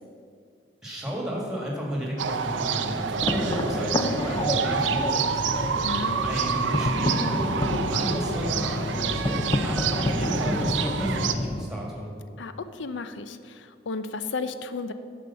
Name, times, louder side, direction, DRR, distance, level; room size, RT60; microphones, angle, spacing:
voice 1, 0.8-5.6 5.9-12.1, equal, 5° right, -3 dB, 1.8 m, -33 dB
sound 1, 2.2-11.3, right 6 dB, 85° right, 0.5 m, -28 dB
sound 2, 3.2-11.7, left 1 dB, 20° left, 0.4 m, -29 dB
voice 2, 5.8-6.2 12.4-14.9, left 4 dB, 85° left, 11 dB, 0.5 m, -34 dB
9.8 x 5.1 x 6.9 m, 2.2 s
head